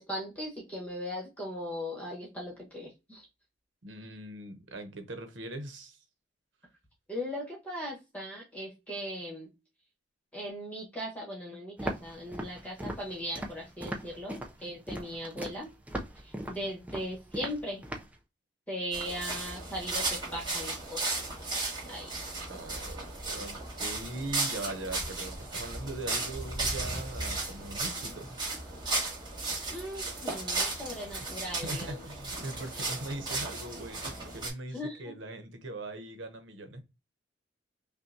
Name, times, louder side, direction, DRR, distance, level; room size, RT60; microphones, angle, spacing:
voice 1, 0.0-3.3 7.1-9.5 10.3-15.7 16.2-17.8 18.7-21.2 21.9-22.1 29.7-32.0 34.7-35.2, equal, 5° left, 1.2 m, -38 dB
voice 2, 3.8-6.0 22.5-28.4 31.2-31.3 31.6-36.8, right 2 dB, 80° right, 0.9 m, -41 dB
Walk footsteps, 11.8-18.2, right 1 dB, 10° right, 0.5 m, -39 dB
sound 1, 18.9-34.5, right 2 dB, 25° right, 1.6 m, -35 dB
5.5 x 2.3 x 2.7 m
head